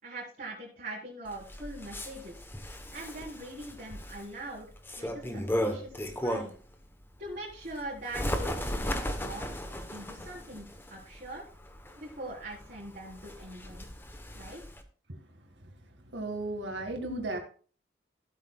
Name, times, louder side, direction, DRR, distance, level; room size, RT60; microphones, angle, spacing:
voice 1, 0.0-2.4 2.9-4.7 5.0-5.9 6.2-6.5 7.2-9.5 9.9-11.4 12.0-13.9 14.3-14.6, right 1 dB, 50° right, -9 dB, 4.0 m, -42 dB
Bird, 1.3-6.7 7.1-14.8, equal, 10° left, 1.0 m, -36 dB
voice 2, 16.1-17.4, right 2 dB, 85° right, 4 dB, 2.0 m, -34 dB
15.5 x 8.3 x 2.3 m, 0.41 s
head